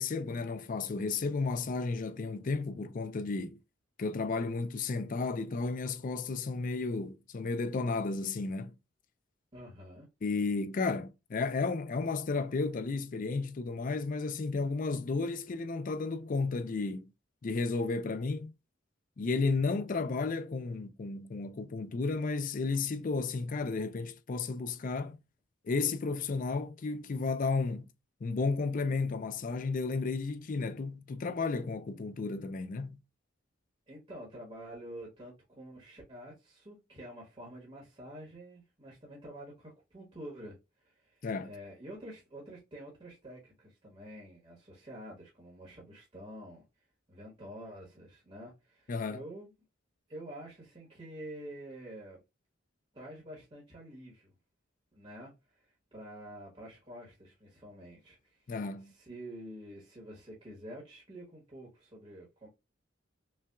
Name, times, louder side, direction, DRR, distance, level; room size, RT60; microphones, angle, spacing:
voice 1, 0.0-3.6 4.0-8.7 10.2-17.1 17.4-18.5 19.2-25.2 25.6-27.8 28.2-33.0 41.2-41.5 48.9-49.2 58.5-58.9, left 4 dB, 45° left, 0.4 m, -33 dB
voice 2, 9.5-10.1 33.9-46.6 47.1-49.5 50.1-52.2 52.9-54.3 54.9-58.5 58.8-62.5, right 1 dB, 30° right, 1.3 m, -48 dB
5.5 x 2.4 x 2.3 m
head